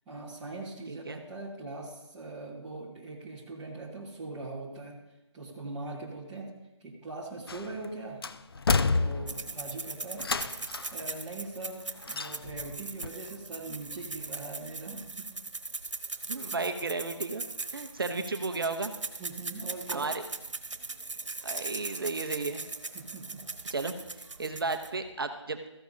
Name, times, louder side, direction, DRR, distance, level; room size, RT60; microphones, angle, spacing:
voice 1, 0.1-5.0 5.3-6.5 6.8-8.2 8.9-10.2 10.9-15.4 16.5-16.6 19.2-20.1 22.9-23.4 24.4-24.6, right 2 dB, 5° right, -8 dB, 0.9 m, -41 dB
voice 2, 0.9-1.2 16.3-17.5 17.7-18.9 19.9-20.3 21.4-22.6 23.7-24.0 24.4-25.6, right 3 dB, 50° right, 7 dB, 0.7 m, -33 dB
sound 1, 7.5-7.9 8.2-9.6 10.2-11.0 12.1-12.7 13.0-13.1, left 4 dB, 50° left, 0.4 m, -29 dB
sound 2, 9.3-25.1, right 3 dB, 85° right, 1.2 m, -40 dB
14.5 x 14.0 x 2.7 m, 0.96 s
figure-of-eight pair, 170°, 15 cm